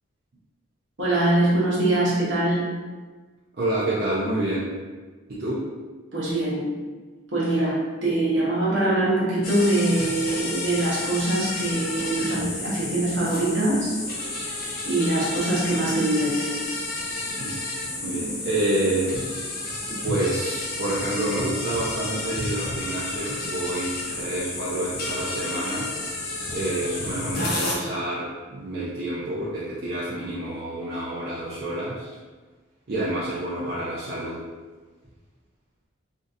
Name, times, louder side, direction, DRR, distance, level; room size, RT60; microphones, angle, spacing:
voice 1, 1.0-2.7 6.1-6.7 7.3-14.0 14.5-16.6 19.9-20.0, right 1 dB, 70° right, -6 dB, 1.1 m, -23 dB
voice 2, 3.6-4.7 5.3-5.7 17.4-17.6 18.0-19.2 20.0-25.9 26.5-32.1 32.9-34.5, right 1 dB, 50° right, -8 dB, 0.5 m, -28 dB
sound 1, 9.4-27.7, left 2 dB, 50° left, 0.6 m, -31 dB
3.7 x 2.5 x 2.7 m, 1.4 s
head